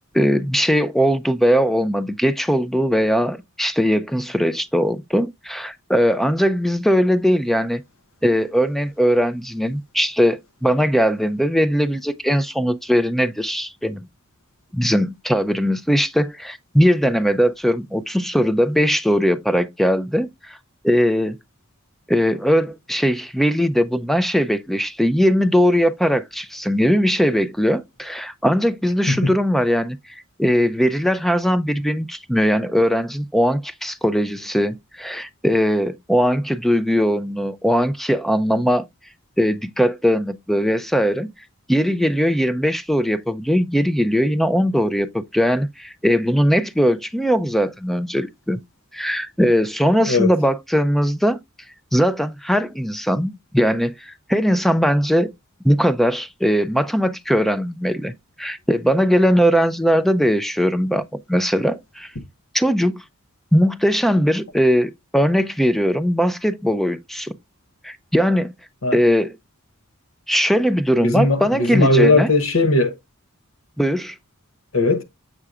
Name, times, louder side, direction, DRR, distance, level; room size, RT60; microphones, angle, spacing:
voice 1, 0.1-7.8 8.2-14.1 14.7-20.6 20.8-21.4 22.1-38.9 39.4-41.3 41.7-48.6 48.9-51.4 51.9-55.3 55.6-61.0 61.3-62.1 62.5-63.0 63.5-67.3 67.8-68.5 68.9-69.4 70.3-72.3 73.8-74.2, equal, ahead, 0.4 m, -20 dB
voice 2, 71.0-72.9 74.7-75.0, left 2 dB, 70° left, 1.0 m, -18 dB
6.7 x 6.1 x 2.4 m
head